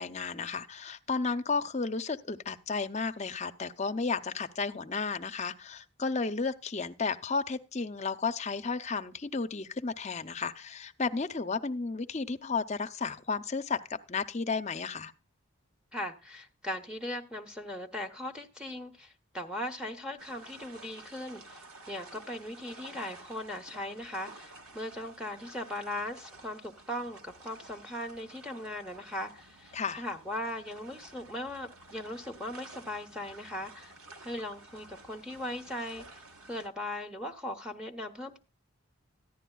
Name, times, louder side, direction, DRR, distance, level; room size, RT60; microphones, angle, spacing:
voice 1, 0.0-15.1 29.7-30.0, left 4 dB, 30° left, 0.6 m, -33 dB
voice 2, 15.9-33.9 34.2-36.2 36.5-38.4, left 1 dB, 5° right, 0.8 m, -39 dB
sound 1, 20.2-36.7, right 2 dB, 80° right, 1.5 m, -52 dB
14.5 x 10.0 x 2.3 m
head